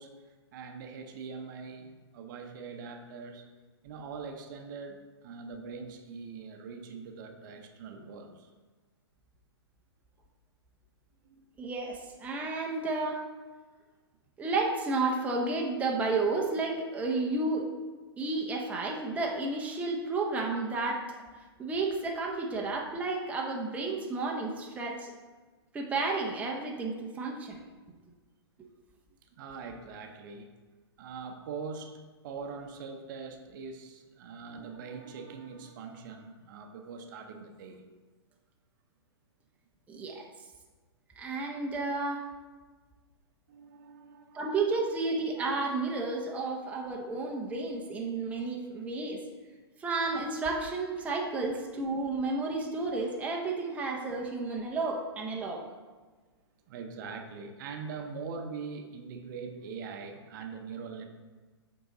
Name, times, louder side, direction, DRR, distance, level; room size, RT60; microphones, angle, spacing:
voice 1, 0.0-3.5 3.8-8.5 11.2-11.4 29.3-30.5 31.0-37.8 43.5-44.9 56.7-61.1, right 5 dB, 45° right, 5 dB, 0.8 m, -43 dB
voice 2, 11.6-13.2 14.4-17.7 18.2-21.0 21.6-25.1 25.7-27.6 39.9-40.3 41.2-42.3 44.3-49.2 49.8-55.6, right 3 dB, 10° right, -1 dB, 0.7 m, -32 dB
7.9 x 3.9 x 3.9 m, 1.3 s
hypercardioid pair, 130°, 14 cm